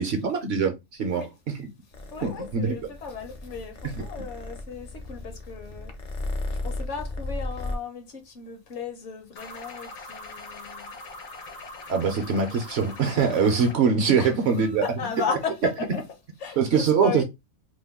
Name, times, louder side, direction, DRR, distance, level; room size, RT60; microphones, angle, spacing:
voice 1, 0.0-1.7 2.2-2.8 11.9-14.8 16.6-17.2, right 6 dB, 60° right, 0.8 m, -23 dB
Purr, 1.9-7.8, left 2 dB, 50° left, 0.6 m, -35 dB
voice 2, 2.1-11.0 14.2-17.2, left 6 dB, 65° left, 1.1 m, -36 dB
sound 1, 9.4-13.8, left 3 dB, 80° left, 1.4 m, -41 dB
3.0 x 2.2 x 3.4 m
omnidirectional pair, 1.4 m